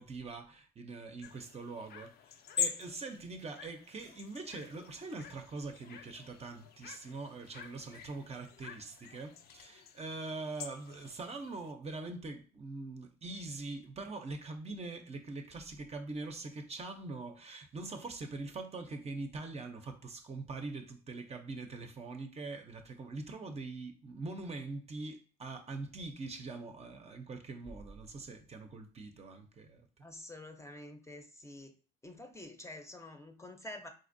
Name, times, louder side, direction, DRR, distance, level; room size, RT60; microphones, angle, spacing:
voice 1, 0.0-2.2 2.6-30.0, right 3 dB, 35° right, 0.6 m, -43 dB
sound 1, 1.2-11.7, left 7 dB, 60° left, 0.5 m, -44 dB
voice 2, 30.0-31.7 32.0-33.9, left 1 dB, 15° left, 0.6 m, -48 dB
4.0 x 2.5 x 2.6 m
supercardioid pair, 70°, 18 cm